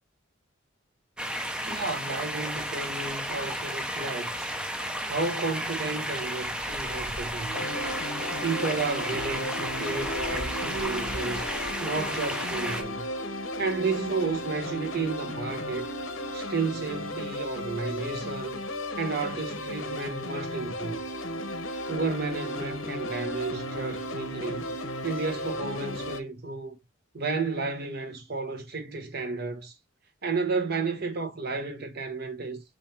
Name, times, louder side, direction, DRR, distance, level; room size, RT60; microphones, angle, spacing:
sound 1, 1.2-12.8, equal, 5° right, 0.6 m, -33 dB
voice 1, 1.7-4.5 5.0-7.6 8.4-11.5 11.8-13.0 13.6-15.9 16.3-18.6 19.0-21.0 21.9-24.7 25.0-26.8 27.1-29.7 30.2-32.6, right 4 dB, 50° right, 1.0 m, -32 dB
sound 2, 7.5-26.2, left 1 dB, 80° left, 0.8 m, -35 dB
5.8 x 2.6 x 3.2 m
head